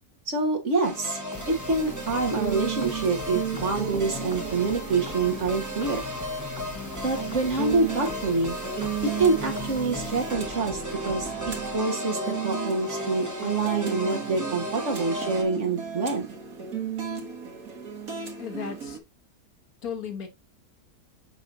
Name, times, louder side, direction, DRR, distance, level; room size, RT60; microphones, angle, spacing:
voice 1, 0.3-1.2 1.5-6.0 7.0-8.6 9.2-11.3 11.7-16.3, right 3 dB, 50° right, 1.7 m, -26 dB
sound 1, 0.8-15.4, equal, 15° right, 1.0 m, -36 dB
sound 2, 0.8-19.0, right 7 dB, 70° right, 1.9 m, -35 dB
sound 3, 1.3-11.8, left 3 dB, 15° left, 0.8 m, -40 dB
voice 2, 18.4-19.0 19.8-20.3, left 7 dB, 75° left, 1.7 m, -35 dB
6.9 x 5.7 x 2.6 m
omnidirectional pair, 1.6 m